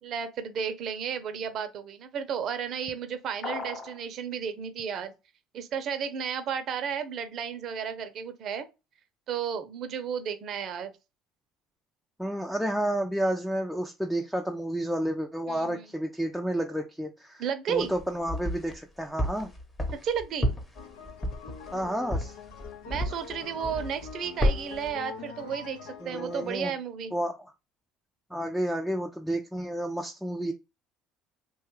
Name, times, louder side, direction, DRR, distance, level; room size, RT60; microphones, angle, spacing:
voice 1, 0.0-5.1 5.5-8.7 9.3-10.9 15.5-15.9 17.4-17.9 19.9-20.6 22.9-27.1, right 7 dB, 55° right, 0.6 m, -33 dB
sound 1, 3.4-4.0, left 3 dB, 40° left, 1.0 m, -36 dB
voice 2, 12.2-17.4 17.7-19.5 21.7-22.3 26.0-26.7 27.1-27.3 28.3-30.5, right 1 dB, ahead, 0.4 m, -30 dB
sound 2, 17.8-18.8 19.2-23.4 23.6-24.1 24.4-24.9, equal, 15° left, 0.9 m, -30 dB
sound 3, 20.8-26.5, left 6 dB, 85° left, 0.6 m, -44 dB
2.8 x 2.3 x 3.1 m
supercardioid pair, 95°, 0 cm